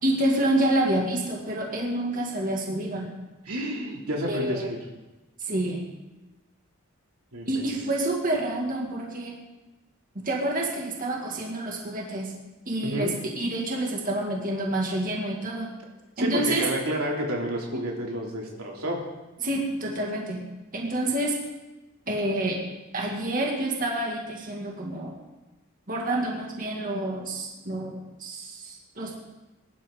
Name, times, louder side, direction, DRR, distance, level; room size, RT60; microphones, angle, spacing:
voice 1, 0.0-3.1 4.2-4.7 5.4-5.9 7.5-9.4 10.2-12.3 12.7-15.7 16.2-16.6 17.7-17.8 19.4-20.4 20.7-21.4 22.1-22.6 22.9-25.2 25.9-29.1, right 1 dB, 40° right, -1 dB, 2.1 m, -28 dB
voice 2, 3.5-4.8 7.3-7.7 12.8-13.1 16.2-19.0, equal, 90° right, -1 dB, 2.8 m, -30 dB
21.5 x 11.5 x 3.8 m, 1.1 s
head